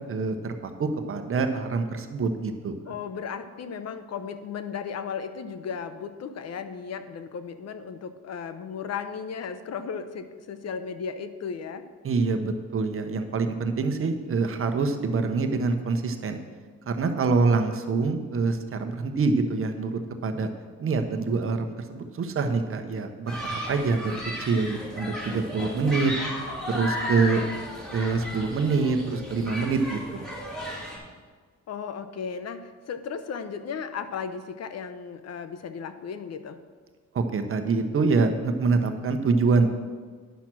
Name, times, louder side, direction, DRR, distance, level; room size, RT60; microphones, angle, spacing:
voice 1, 0.1-2.7 12.0-16.4 16.9-20.5 20.8-26.1 26.7-27.4 27.9-30.2 37.1-39.7, right 4 dB, 45° right, 6 dB, 1.0 m, -25 dB
voice 2, 2.9-11.8 31.7-36.6, left 6 dB, 60° left, 10 dB, 0.8 m, -35 dB
Human group actions, 23.3-31.0, left 1 dB, ahead, 2.9 m, -34 dB
10.5 x 5.9 x 6.2 m, 1.5 s
cardioid pair, 90°, 30 cm